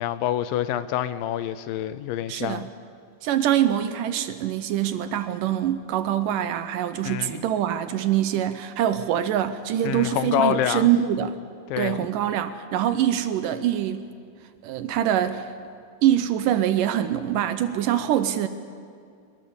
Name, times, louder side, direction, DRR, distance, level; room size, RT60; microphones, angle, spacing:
voice 1, 0.0-2.6 7.1-7.5 9.8-10.9 11.7-12.1, left 11 dB, 80° left, 13 dB, 2.3 m, -27 dB
voice 2, 2.3-2.7 3.2-11.4 11.8-14.1 14.6-15.5 16.0-18.5, right 11 dB, 75° right, 10 dB, 2.2 m, -24 dB
23.5 x 22.0 x 7.1 m, 2.2 s
omnidirectional pair, 4.2 m